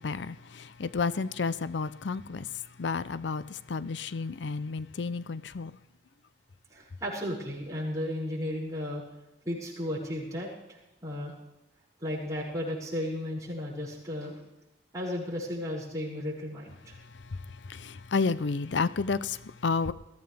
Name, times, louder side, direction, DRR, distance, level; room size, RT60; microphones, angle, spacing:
voice 1, 0.0-5.8 16.9-19.9, left 4 dB, 85° left, 0.6 m, -31 dB
voice 2, 6.7-9.0 9.4-11.3 12.0-14.4 14.9-16.9, left 1 dB, 20° right, 6.3 m, -34 dB
21.5 x 15.0 x 3.5 m
head